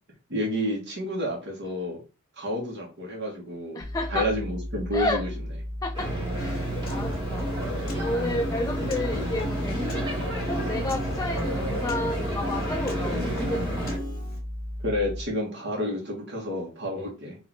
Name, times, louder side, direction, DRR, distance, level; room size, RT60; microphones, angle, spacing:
voice 1, 0.3-2.0 2.4-3.8 4.1-5.3 14.8-17.4, equal, 60° right, 1.4 m, -30 dB
voice 2, 3.7-4.3 4.9-5.2 5.8-7.5 8.0-13.8, left 2 dB, 15° left, 0.4 m, -31 dB
sound 1, 3.8-15.2, left 1 dB, 75° right, 1.8 m, -35 dB
sound 2, 5.9-14.0, right 1 dB, 25° right, 1.9 m, -31 dB
Piano, 6.4-14.4, left 1 dB, 50° left, 1.8 m, -37 dB
4.1 x 2.8 x 4.5 m
head